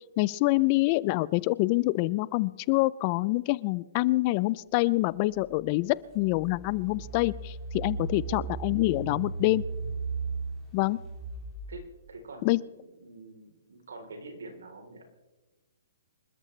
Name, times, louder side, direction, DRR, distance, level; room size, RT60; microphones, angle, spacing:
voice 1, 0.2-9.6 10.7-11.0 12.4-12.6, left 20 dB, 35° left, 21 dB, 0.4 m, -26 dB
Engine, 5.4-5.5 6.1-12.0, right 4 dB, 10° right, 5.7 m, -36 dB
voice 2, 8.0-8.4 11.7-11.8 12.1-15.0, right 3 dB, 85° right, 3 dB, 3.7 m, -46 dB
26.0 x 13.0 x 3.3 m, 1.2 s
hypercardioid pair, 145°, 0 cm